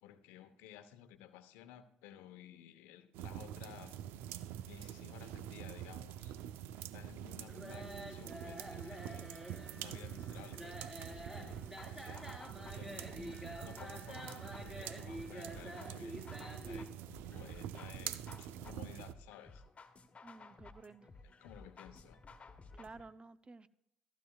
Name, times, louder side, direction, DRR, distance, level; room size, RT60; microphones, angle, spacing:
voice 1, 0.0-4.0 4.6-6.4 6.7-9.4 9.7-12.2 12.7-16.9 17.3-19.6 21.2-22.2, left 11 dB, 80° left, 10 dB, 0.9 m, -56 dB
sound 1, 3.1-19.1, right 11 dB, 75° right, 0.6 m, -46 dB
sound 2, 7.5-16.9, equal, 10° right, 4.4 m, -48 dB
sound 3, 11.1-23.1, left 3 dB, 35° left, 1.4 m, -56 dB
voice 2, 20.2-21.1 22.7-23.7, right 3 dB, 30° right, 13 dB, 0.6 m, -53 dB
15.0 x 12.0 x 2.4 m, 0.81 s
hypercardioid pair, 55°, 4 cm